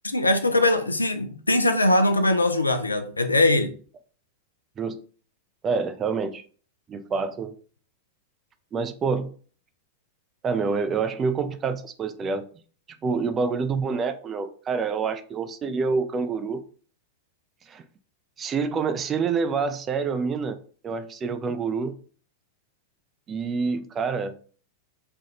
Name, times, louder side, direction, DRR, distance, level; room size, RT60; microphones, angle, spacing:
voice 1, 0.0-3.7, left 2 dB, 80° left, 0.4 m, -21 dB
voice 2, 5.6-6.4 6.9-7.6 8.7-9.3 10.4-12.4 13.0-16.6 17.7-17.8 18.4-20.6 20.8-22.0 23.3-24.3, right 5 dB, 25° right, 0.3 m, -27 dB
3.3 x 2.2 x 2.8 m
figure-of-eight pair, 90°, 0 cm